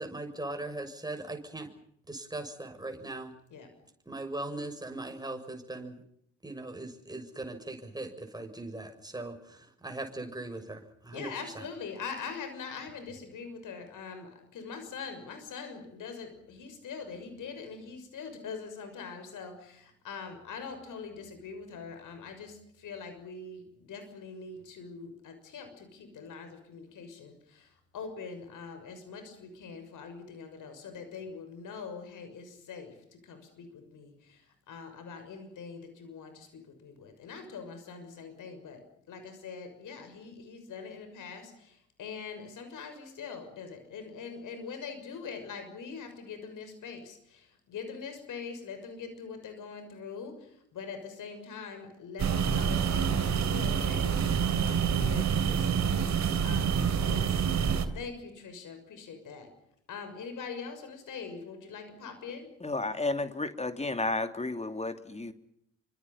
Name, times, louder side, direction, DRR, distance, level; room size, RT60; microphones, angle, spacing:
voice 1, 0.0-1.7 2.1-3.3 4.0-6.0 6.4-11.7, right 2 dB, 10° right, 4 dB, 6.8 m, -39 dB
voice 2, 11.1-54.4 54.6-55.8 56.4-57.5 57.9-59.5 59.9-62.5, left 5 dB, 60° left, 8 dB, 6.5 m, -43 dB
sound 1, 52.2-57.9, right 7 dB, 50° right, 3.2 m, -27 dB
voice 3, 62.6-65.3, left 2 dB, 20° left, 9 dB, 2.9 m, -32 dB
28.0 x 25.5 x 5.7 m, 0.72 s
hypercardioid pair, 45°, 35 cm